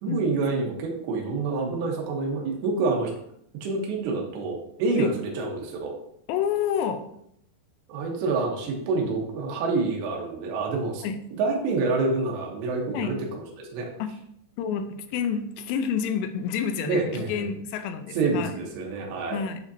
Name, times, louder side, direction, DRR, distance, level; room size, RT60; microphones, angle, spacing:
voice 1, 0.0-3.1 3.6-6.0 7.9-11.0 11.4-13.9 16.9-17.5 18.1-19.4, right 3 dB, 80° right, 0 dB, 3.3 m, -27 dB
voice 2, 6.3-7.0 11.0-11.2 12.9-13.1 14.0-14.1 14.6-18.5 19.3-19.6, left 7 dB, 85° left, 8 dB, 2.8 m, -28 dB
8.0 x 5.1 x 2.7 m, 0.72 s
omnidirectional pair, 5.0 m